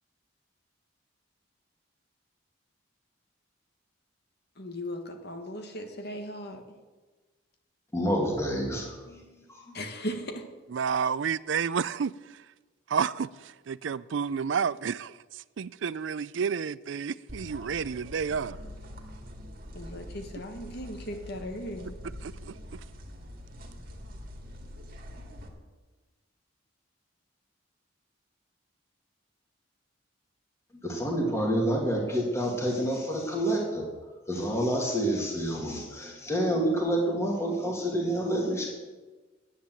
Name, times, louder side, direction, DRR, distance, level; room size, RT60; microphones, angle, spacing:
voice 1, 4.6-6.6 9.7-10.4 19.7-22.0, equal, 55° left, 1.7 m, -37 dB
voice 2, 7.9-9.2 9.5-9.7 30.7-33.9 34.3-38.7, equal, 15° left, 2.2 m, -28 dB
voice 3, 10.7-12.1 12.9-13.3 13.7-15.1 15.6-18.6 22.2-22.5, right 6 dB, 70° right, 0.4 m, -30 dB
sound 1, 17.3-25.5, equal, 50° right, 2.0 m, -44 dB
10.5 x 9.9 x 7.8 m
head